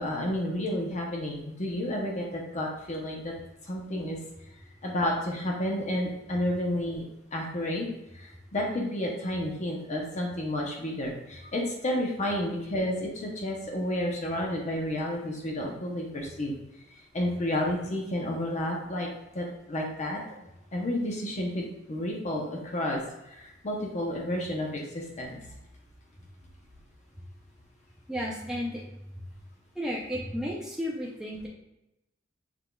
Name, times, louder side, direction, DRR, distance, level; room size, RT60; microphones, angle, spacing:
voice 1, 0.0-3.3 3.6-4.2 4.8-7.0 7.3-7.9 8.1-16.5 16.9-19.1 19.3-20.2 20.7-23.0 23.2-25.4, left 1 dB, 35° left, -1 dB, 0.7 m, -31 dB
voice 2, 28.1-28.8 29.8-31.5, equal, 5° right, -4 dB, 0.5 m, -33 dB
5.9 x 3.4 x 2.3 m, 0.91 s
head